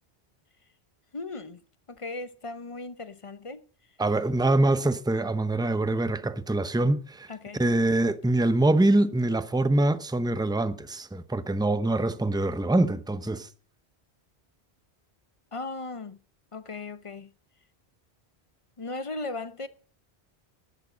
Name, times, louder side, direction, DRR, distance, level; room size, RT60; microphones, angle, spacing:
voice 1, 1.1-1.6 1.9-3.6 7.3-7.6 15.5-16.2 16.5-17.3 18.8-19.7, left 3 dB, 30° left, 0.8 m, -37 dB
voice 2, 4.0-13.5, right 2 dB, 5° right, 0.6 m, -24 dB
13.0 x 11.0 x 5.1 m
omnidirectional pair, 1.1 m